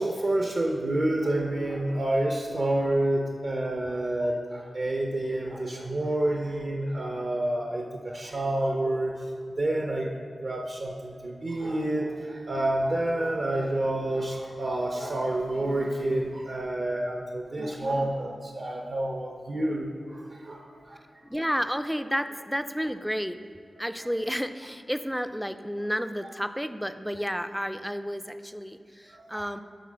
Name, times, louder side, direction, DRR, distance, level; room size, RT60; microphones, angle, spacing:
voice 1, 0.0-9.2 9.6-10.1 10.4-21.0 24.0-24.1 29.1-29.5, right 1 dB, 50° right, 1 dB, 0.7 m, -29 dB
voice 2, 17.6-18.1 21.3-23.4 23.8-29.6, equal, ahead, 11 dB, 0.3 m, -31 dB
11.5 x 3.9 x 6.2 m, 2.2 s
wide cardioid pair, 125°, 0 cm